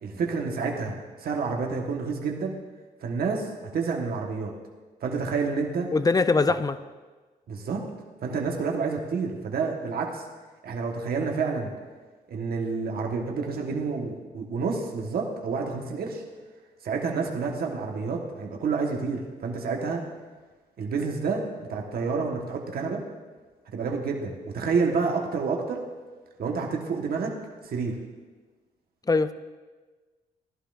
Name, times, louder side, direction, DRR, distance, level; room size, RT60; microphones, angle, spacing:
voice 1, 0.0-2.5 3.0-4.5 5.0-5.9 6.5-6.6 7.5-7.8 8.2-10.2 10.6-11.7 12.3-16.2 16.8-20.1 20.8-23.0 23.7-25.8 26.4-27.3 27.6-28.0, right 4 dB, 65° right, 1 dB, 1.4 m, -29 dB
voice 2, 5.9-6.8 29.1-29.3, left 3 dB, 20° left, 13 dB, 0.5 m, -22 dB
16.0 x 11.5 x 2.6 m, 1.3 s
supercardioid pair, 65°, 17 cm